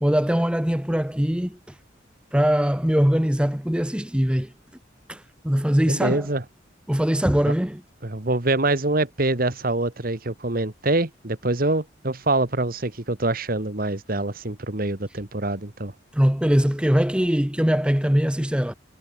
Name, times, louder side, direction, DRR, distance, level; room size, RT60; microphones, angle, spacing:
voice 1, 0.0-1.7 2.3-4.5 5.1-6.3 6.9-7.8 16.1-18.7, equal, 5° right, 0.8 m, -22 dB
voice 2, 5.9-6.4 7.5-7.6 8.0-15.9, right 2 dB, 50° right, 1.9 m, -25 dB
head